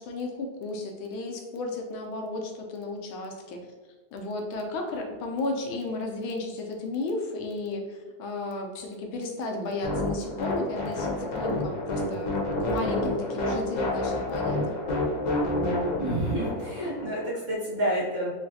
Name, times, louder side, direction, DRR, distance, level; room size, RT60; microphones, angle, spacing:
voice 1, 0.0-3.6 4.1-12.3 12.6-14.8, left 2 dB, 90° left, 2 dB, 1.5 m, -33 dB
sound 1, 9.8-17.3, left 1 dB, 60° left, 1.0 m, -29 dB
voice 2, 16.0-18.3, right 1 dB, 40° right, -7 dB, 1.3 m, -29 dB
3.7 x 3.2 x 2.6 m, 1.3 s
omnidirectional pair, 2.2 m